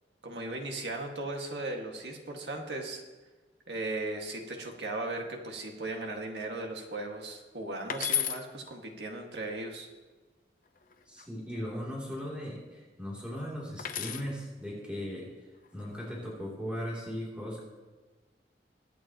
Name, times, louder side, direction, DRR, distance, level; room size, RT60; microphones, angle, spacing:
voice 1, 0.2-3.0 3.7-9.9, right 2 dB, 70° right, 1 dB, 1.9 m, -37 dB
sound 1, 7.9-8.4 10.7-11.3 13.8-14.3 15.6-16.1, left 9 dB, 50° left, 0.8 m, -33 dB
voice 2, 11.1-15.3 15.7-17.6, equal, 5° right, -5 dB, 3.1 m, -38 dB
23.0 x 8.3 x 3.0 m, 1.3 s
head